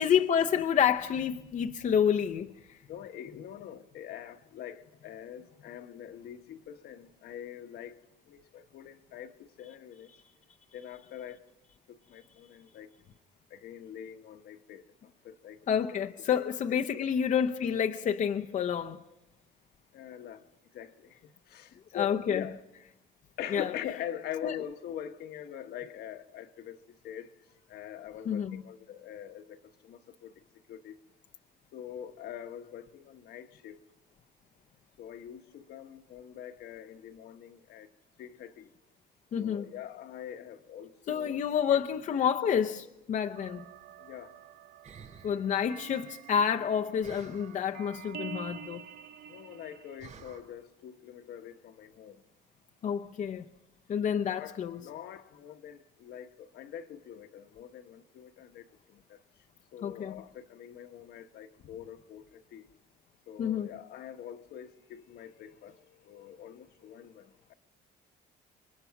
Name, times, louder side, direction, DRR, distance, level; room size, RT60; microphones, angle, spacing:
voice 1, 0.0-2.5 15.7-19.0 21.9-22.4 23.5-23.7 24.4-24.6 28.3-28.6 39.3-39.7 41.1-43.6 45.2-48.8 52.8-53.4 53.9-54.8 59.8-60.2 63.4-63.7, left 8 dB, 50° left, 0.8 m, -29 dB
voice 2, 2.9-8.0 8.3-10.1 10.7-11.4 11.9-12.9 13.5-14.9 15.2-15.6 16.2-16.5 16.9-17.0 19.9-20.5 20.7-22.6 23.4-27.3 27.7-30.3 30.7-31.0 31.7-33.8 35.0-37.9 38.2-38.7 39.4-41.4 41.7-41.8 42.1-42.3 44.0-44.3 49.3-52.2 54.3-59.2 59.7-62.7 63.3-67.5, left 10 dB, 70° left, 1.4 m, -44 dB
sound 1, 43.3-50.0, right 9 dB, 70° right, 0.9 m, -48 dB
sound 2, 44.8-45.5 47.0-47.7 50.0-50.4, right 6 dB, 45° right, 5.8 m, -50 dB
28.5 x 23.5 x 5.9 m
cardioid pair, 110°, 17 cm